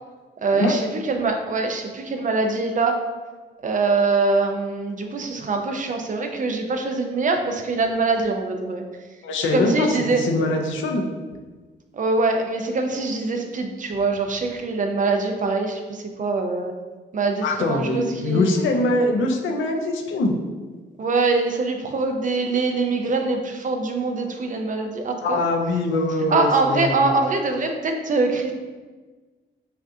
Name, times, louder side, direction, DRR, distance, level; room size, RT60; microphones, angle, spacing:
voice 1, 0.4-3.0 3.6-8.8 9.5-10.2 11.9-16.7 17.1-18.5 21.0-25.4 26.3-28.5, right 3 dB, 40° right, 4 dB, 0.5 m, -23 dB
voice 2, 9.2-11.0 17.4-20.3 25.2-27.0, left 2 dB, 85° left, 2 dB, 0.6 m, -23 dB
5.5 x 2.4 x 2.7 m, 1.3 s
cardioid pair, 95°, 20 cm